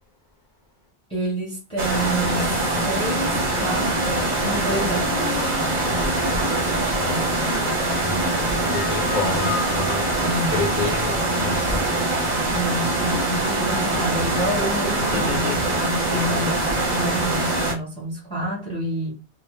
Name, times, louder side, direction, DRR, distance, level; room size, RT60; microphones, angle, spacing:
voice 1, 1.1-2.5 2.8-5.3 7.1-7.8 10.2-10.7 12.5-19.1, right 1 dB, 5° left, 0.9 m, -29 dB
sound 1, 1.8-17.7, right 2 dB, 50° right, 0.7 m, -23 dB
sound 2, 2.5-12.0, left 7 dB, 80° left, 0.9 m, -37 dB
voice 2, 8.0-10.1 10.5-11.9 15.1-15.6, left 2 dB, 50° left, 0.8 m, -29 dB
2.0 x 2.0 x 3.0 m
omnidirectional pair, 1.1 m